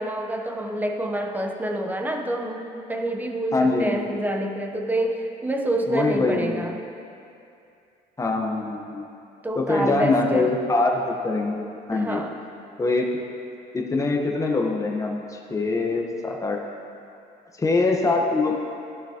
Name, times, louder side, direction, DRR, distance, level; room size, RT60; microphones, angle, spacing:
voice 1, 0.0-6.8 9.4-10.5 11.9-12.3, right 1 dB, 10° right, 3 dB, 0.8 m, -27 dB
voice 2, 3.5-4.0 5.9-6.6 8.2-9.0 9.5-12.2 12.8-13.1 13.7-16.6 17.6-18.5, left 3 dB, 20° left, 1 dB, 1.0 m, -23 dB
14.5 x 5.9 x 2.9 m, 2.6 s
cardioid pair, 110°, 17 cm